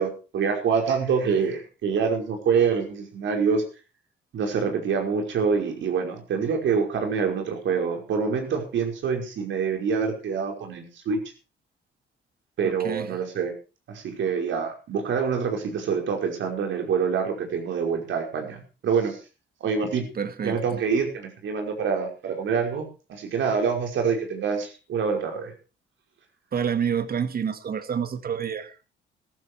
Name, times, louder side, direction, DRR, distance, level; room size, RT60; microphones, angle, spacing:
voice 1, 0.0-3.6 4.3-11.2 12.6-13.5 13.9-19.2 19.6-20.1 20.4-25.5, right 6 dB, 70° right, 5.3 m, -26 dB
voice 2, 12.6-13.1 19.8-19.9 20.2-20.8 26.5-28.8, right 7 dB, 50° right, 2.0 m, -29 dB
14.5 x 14.5 x 4.7 m
cardioid pair, 90°, 20 cm